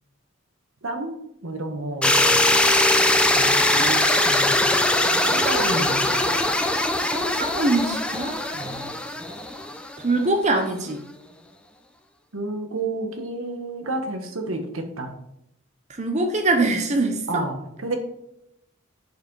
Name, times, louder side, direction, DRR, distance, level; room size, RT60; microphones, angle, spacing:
voice 1, 0.8-1.2 1.4-2.3 3.3-4.6 5.2-6.1 8.5-8.9 12.3-15.1 17.3-18.0, right 2 dB, 80° right, 5 dB, 1.2 m, -30 dB
sound 1, 2.0-10.0, left 1 dB, 5° left, 0.5 m, -21 dB
voice 2, 7.1-8.4 10.0-11.0 15.9-17.5, right 2 dB, 35° right, 4 dB, 0.8 m, -23 dB
7.1 x 5.1 x 4.7 m, 0.80 s
head